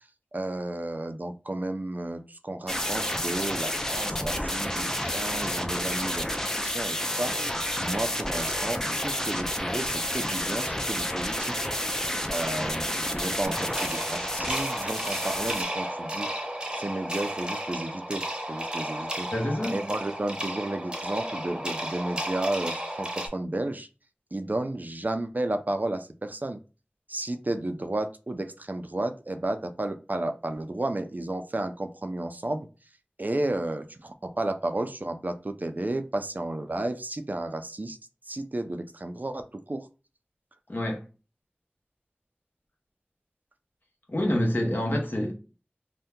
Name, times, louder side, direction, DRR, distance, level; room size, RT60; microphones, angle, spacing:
voice 1, 0.3-6.4 6.6-7.3 7.8-11.6 12.3-16.3 16.8-19.3 19.7-23.9 24.3-26.6 27.1-32.7 33.2-38.0 38.3-39.9, right 2 dB, 50° right, 0.4 m, -32 dB
sound 1, 2.7-15.6, equal, 15° left, 0.5 m, -30 dB
sound 2, 13.4-23.3, right 1 dB, 25° right, 0.8 m, -33 dB
voice 2, 19.3-19.8 40.7-41.0 44.1-45.3, left 1 dB, 55° left, 0.9 m, -27 dB
2.7 x 2.2 x 3.5 m
wide cardioid pair, 40°, 4 cm